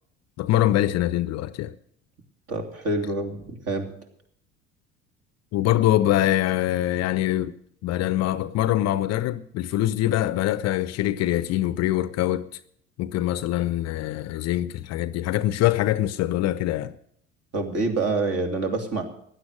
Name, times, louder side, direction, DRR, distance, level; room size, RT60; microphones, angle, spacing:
voice 1, 0.4-1.7 5.5-7.6 7.8-12.5 13.0-16.9, left 14 dB, 45° left, 0.7 m, -24 dB
voice 2, 2.5-3.9 17.5-19.0, right 3 dB, 40° right, 3.0 m, -26 dB
15.5 x 11.0 x 6.5 m
figure-of-eight pair, 60°, 38 cm